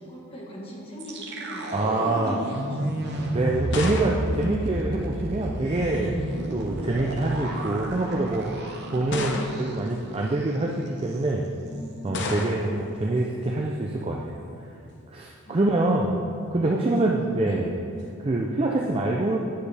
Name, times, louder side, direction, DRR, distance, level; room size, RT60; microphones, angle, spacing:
voice 1, 0.0-3.6 8.8-9.4 11.6-12.3 15.5-16.0 16.6-17.7, equal, 25° left, -3 dB, 1.2 m, -41 dB
sound 1, 1.0-10.0 10.3-10.5 10.9-11.2, right 1 dB, 50° right, 0.8 m, -32 dB
voice 2, 1.7-2.4 3.3-6.1 6.5-11.5 12.0-14.2 15.1-16.2 16.5-17.7 18.2-19.4, right 2 dB, 25° right, -1 dB, 0.4 m, -25 dB
sound 2, 3.6-5.5 6.5-7.0 7.8-7.9 9.1-9.9 12.1-12.9, left 3 dB, 55° left, 0.6 m, -33 dB
9.5 x 6.6 x 3.4 m, 2.5 s
head